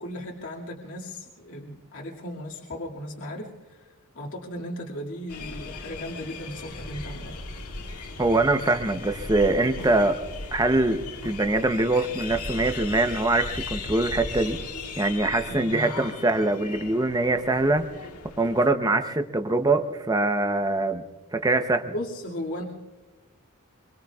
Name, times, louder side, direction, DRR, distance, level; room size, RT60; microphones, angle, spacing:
voice 1, 0.0-7.4 15.5-16.1 21.9-22.6, left 1 dB, 65° left, -3 dB, 2.2 m, -36 dB
sound 1, 5.3-18.7, left 3 dB, 90° left, 1.8 m, -38 dB
voice 2, 8.2-10.2 10.5-14.6 15.0-17.9 18.4-21.0 21.3-21.9, right 2 dB, 15° right, 6 dB, 0.7 m, -23 dB
25.5 x 24.0 x 2.4 m, 1.2 s
head